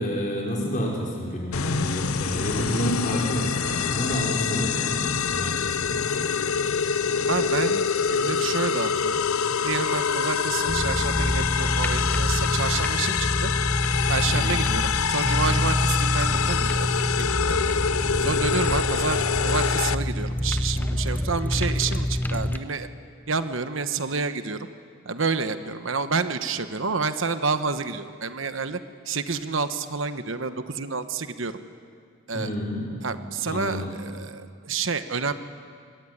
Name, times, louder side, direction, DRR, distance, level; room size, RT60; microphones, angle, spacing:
voice 1, 0.0-6.1 14.3-14.6 32.3-33.0 33.4-33.9, equal, 35° left, -2 dB, 5.6 m, -29 dB
sound 1, 1.5-19.9, left 6 dB, 90° left, 0.7 m, -26 dB
voice 2, 7.3-9.2 9.6-13.5 14.1-16.9 17.2-17.6 18.2-22.9 23.3-24.7 25.0-28.8 29.1-31.6 32.3-32.5 33.0-35.3, right 4 dB, 65° right, 10 dB, 1.2 m, -29 dB
sound 2, 10.7-22.6, left 1 dB, 10° left, 0.7 m, -26 dB
26.0 x 22.0 x 9.9 m, 2.2 s
head